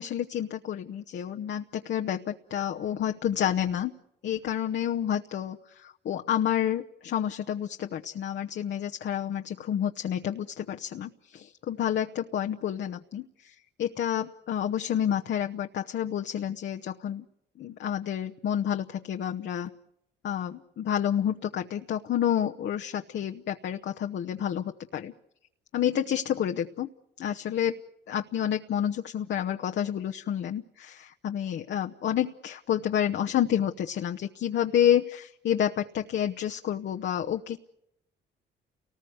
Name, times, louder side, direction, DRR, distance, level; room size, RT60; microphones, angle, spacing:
voice 1, 0.0-3.9 4.2-13.5 13.8-17.3 17.6-19.7 20.2-25.1 25.7-26.9 27.2-27.8 28.1-37.6, left 10 dB, 65° left, 4 dB, 0.9 m, -29 dB
29.5 x 19.5 x 7.9 m, 0.81 s
cardioid pair, 90°, 20 cm